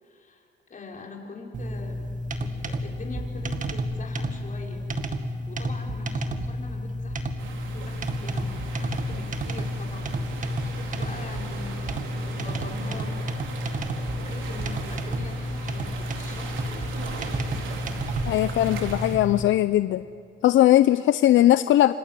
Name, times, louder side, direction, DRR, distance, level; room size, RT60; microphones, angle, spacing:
voice 1, 0.0-2.1 2.4-4.9 5.5-13.2 14.2-17.6, left 3 dB, 40° left, 0 dB, 5.9 m, -43 dB
sound 1, 1.5-19.4, equal, 40° right, 2.2 m, -31 dB
sound 2, 7.4-19.2, right 4 dB, 75° right, 4.3 m, -39 dB
voice 2, 18.3-20.1 20.4-21.9, left 13 dB, 75° left, 13 dB, 0.7 m, -19 dB
29.0 x 27.0 x 7.7 m, 2.3 s
cardioid pair, 90°, 20 cm